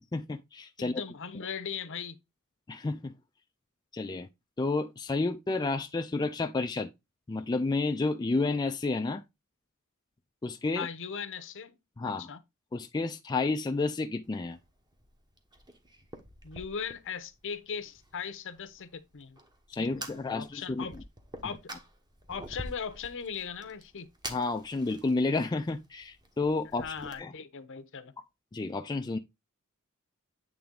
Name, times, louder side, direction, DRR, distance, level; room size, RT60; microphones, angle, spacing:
voice 1, 0.1-1.0 2.7-3.1 3.9-4.3 4.6-6.9 7.3-9.2 10.4-10.9 12.0-12.3 12.7-14.6 19.7-20.9 21.7-21.8 24.3-27.3 28.5-29.2, left 3 dB, 20° left, 0.4 m, -31 dB
voice 2, 0.8-2.2 10.7-11.8 12.0-12.4 16.4-19.4 19.7-21.0 21.4-21.7 22.3-24.1 26.8-28.1, left 6 dB, 60° left, 0.8 m, -39 dB
Fire, 14.2-27.2, right 1 dB, 20° right, 1.1 m, -48 dB
8.6 x 3.4 x 3.7 m
head